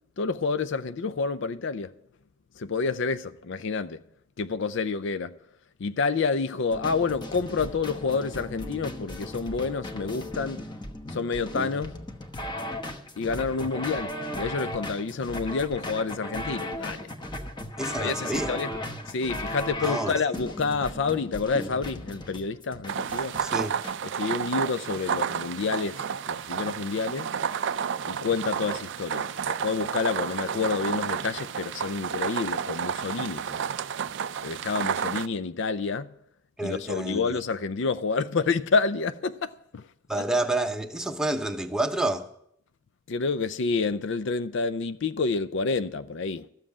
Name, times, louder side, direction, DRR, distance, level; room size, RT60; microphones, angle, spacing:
voice 1, 0.2-1.9 2.6-4.0 4.4-5.4 5.8-10.7 11.1-12.0 13.2-17.1 18.0-18.7 19.1-23.4 24.2-27.3 28.0-33.6 34.4-36.1 36.6-39.8 40.2-40.3 43.1-46.5, left 4 dB, 60° left, 0.5 m, -29 dB
sound 1, 6.7-24.0, left 1 dB, 20° left, 1.1 m, -36 dB
voice 2, 17.8-18.8 19.8-20.1 23.4-23.8 36.6-37.4 40.1-42.3, right 2 dB, 5° right, 0.8 m, -29 dB
sound 2, 22.9-35.3, right 7 dB, 60° right, 0.4 m, -31 dB
13.5 x 7.5 x 8.6 m
head